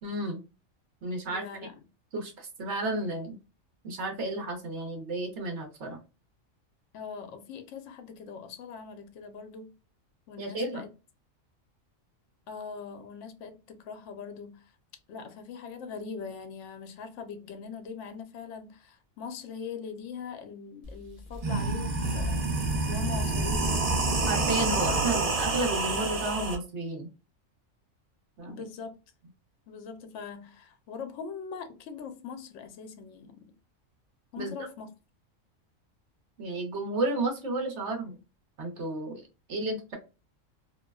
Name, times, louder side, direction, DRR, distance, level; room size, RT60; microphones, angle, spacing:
voice 1, 0.0-0.4 1.0-1.4 2.1-3.4 3.8-6.0 10.4-10.8 24.3-27.1 28.4-28.6 34.4-34.7 36.4-38.2 38.6-39.2 39.5-40.0, right 2 dB, 65° right, 1.0 m, -32 dB
voice 2, 1.3-1.7 6.9-9.7 10.3-10.9 12.5-14.7 15.1-22.4 22.9-23.8 28.4-29.0 29.7-33.4 34.3-34.9, left 5 dB, 70° left, 0.9 m, -41 dB
sound 1, 20.8-20.9 21.3-26.6, right 3 dB, 45° right, 0.5 m, -28 dB
2.6 x 2.1 x 2.2 m
omnidirectional pair, 1.3 m